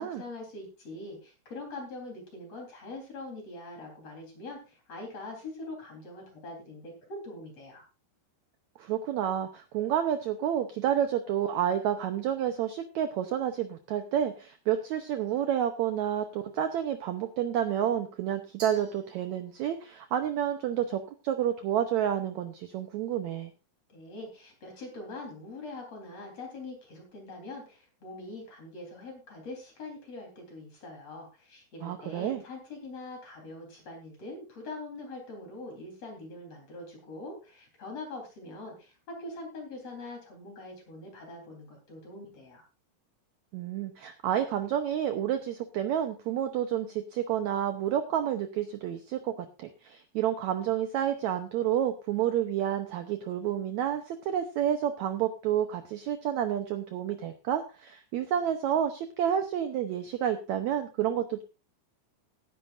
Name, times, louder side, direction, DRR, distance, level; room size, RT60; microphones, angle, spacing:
voice 1, 0.0-7.8 23.9-42.6, left 2 dB, 45° left, 1 dB, 4.7 m, -43 dB
voice 2, 8.8-23.5 31.8-32.4 43.5-61.4, right 10 dB, 75° right, 7 dB, 1.7 m, -30 dB
Glass, 18.6-19.8, right 4 dB, 40° right, 3.8 m, -49 dB
17.5 x 10.0 x 2.5 m, 0.30 s
omnidirectional pair, 4.2 m